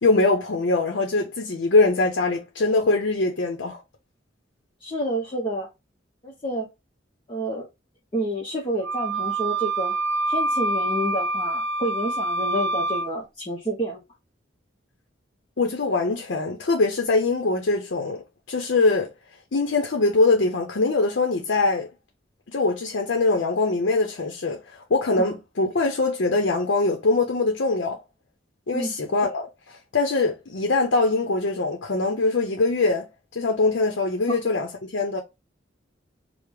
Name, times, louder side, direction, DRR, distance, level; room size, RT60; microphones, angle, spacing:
voice 1, 0.0-3.8 15.6-18.2 18.5-19.1 19.5-21.9 22.5-28.0 28.7-35.2, left 3 dB, 75° left, 0.6 m, -23 dB
voice 2, 4.8-5.7 6.2-6.7 7.3-7.7 8.1-9.9 10.3-14.0 25.2-25.3 28.7-28.9 34.3-34.4, right 1 dB, 30° left, 0.7 m, -29 dB
Wind instrument woodwind instrument, 8.8-13.1, right 2 dB, 65° right, 0.7 m, -26 dB
4.8 x 2.0 x 3.4 m
head